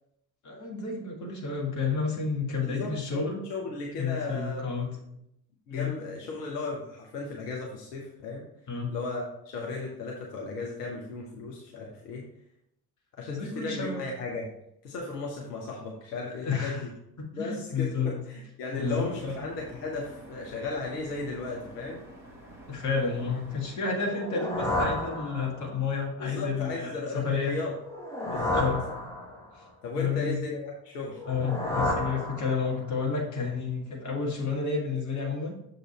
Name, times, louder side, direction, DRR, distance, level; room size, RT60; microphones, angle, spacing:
voice 1, 0.4-3.4 4.0-4.9 5.7-5.9 8.7-8.9 13.3-14.0 16.4-16.8 17.2-18.2 18.7-19.3 22.7-27.6 28.5-28.8 30.0-30.4 31.3-35.6, left 5 dB, 35° left, 0 dB, 1.8 m, -30 dB
voice 2, 2.6-4.9 5.7-8.4 8.9-12.3 13.2-14.5 14.8-16.9 17.3-22.0 26.2-27.7 28.2-28.7 29.8-31.2, left 3 dB, 70° left, -1 dB, 1.1 m, -35 dB
sound 1, 18.7-23.8, right 1 dB, 85° right, 1.0 m, -48 dB
sound 2, 24.0-25.9 27.8-29.6 31.1-32.9, left 1 dB, 5° left, 1.5 m, -31 dB
6.6 x 4.0 x 4.3 m, 0.77 s
figure-of-eight pair, 50°, 50 cm